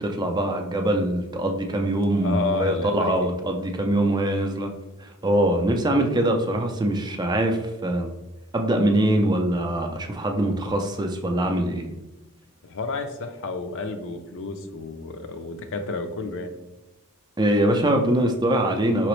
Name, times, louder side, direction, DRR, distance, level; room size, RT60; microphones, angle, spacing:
voice 1, 0.0-4.7 5.0-8.1 8.5-11.9 17.4-19.1, right 1 dB, 20° right, 4 dB, 0.4 m, -23 dB
voice 2, 2.2-3.3 12.6-16.5, left 3 dB, 60° left, 7 dB, 0.5 m, -31 dB
4.9 x 3.0 x 3.1 m, 1.0 s
head